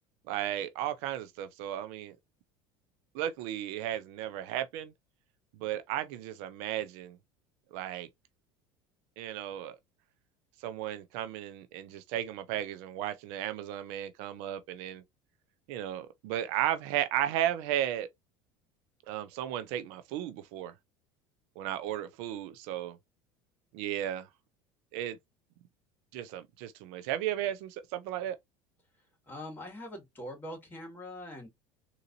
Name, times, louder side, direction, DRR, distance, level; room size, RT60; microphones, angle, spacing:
voice 1, 0.3-2.2 3.1-4.9 5.6-7.2 7.7-8.1 9.2-9.8 10.6-15.0 15.7-18.1 19.1-20.7 21.6-23.0 23.7-24.3 24.9-25.2 26.1-28.4, right 12 dB, 70° right, 0.5 m, -34 dB
voice 2, 29.3-31.5, left 1 dB, 15° left, 2.2 m, -43 dB
3.8 x 2.8 x 2.5 m
supercardioid pair, 90°, 12 cm